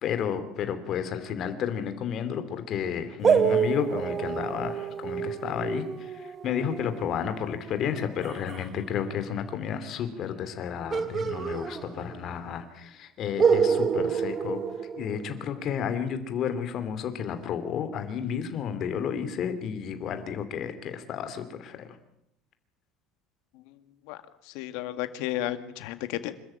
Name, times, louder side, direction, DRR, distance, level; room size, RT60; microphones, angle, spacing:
voice 1, 0.0-14.6 15.0-22.0, left 8 dB, 40° left, 9 dB, 2.7 m, -32 dB
sound 1, 3.2-8.7 10.9-12.4 12.6-12.7 13.4-15.6, right 6 dB, 25° right, 1.2 m, -28 dB
voice 2, 23.7-24.2 24.5-26.4, left 13 dB, 70° left, 11 dB, 1.9 m, -33 dB
26.5 x 13.5 x 9.0 m, 0.81 s
cardioid pair, 165°, 0 cm